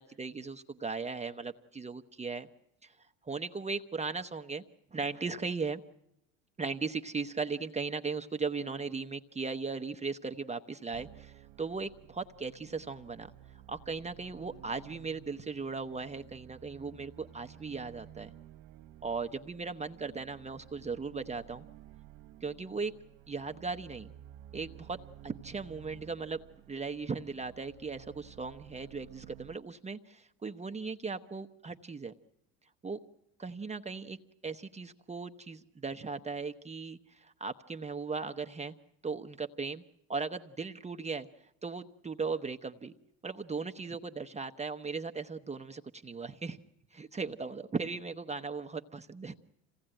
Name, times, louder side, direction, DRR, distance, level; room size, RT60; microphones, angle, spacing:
voice 1, 0.0-2.5 2.8-2.9 3.2-4.6 4.9-5.8 6.6-13.3 13.7-18.3 19.0-21.7 22.4-22.9 23.3-24.1 24.5-25.0 25.2-26.4 26.7-32.1 32.8-33.0 33.4-34.2 34.4-38.8 39.0-39.8 40.1-41.3 41.6-42.9 43.2-46.6 46.9-49.4, right 4 dB, 15° right, 7 dB, 0.9 m, -37 dB
sound 1, 10.9-29.6, right 12 dB, 60° right, 0.9 m, -54 dB
26.5 x 17.0 x 9.0 m, 0.81 s
hypercardioid pair, 85°, 40 cm